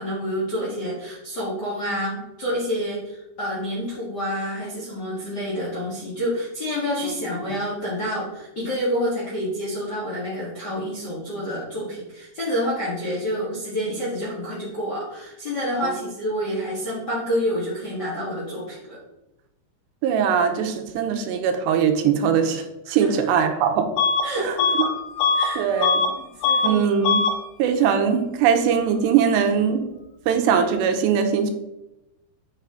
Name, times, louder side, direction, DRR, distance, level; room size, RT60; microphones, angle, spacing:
voice 1, 0.0-19.0 22.9-23.3 24.2-24.8 25.3-25.7 26.1-26.8, equal, 50° left, -7 dB, 1.3 m, -28 dB
voice 2, 20.0-23.9 24.4-24.6 25.6-26.0 26.6-27.2 27.6-29.8 30.3-31.5, right 7 dB, 90° right, 5 dB, 2.9 m, -21 dB
Bus / Alarm, 24.0-24.3 24.6-26.2 26.4-26.8 27.0-27.4, left 4 dB, 85° left, 2.8 m, -21 dB
8.2 x 5.7 x 3.8 m, 0.92 s
omnidirectional pair, 4.9 m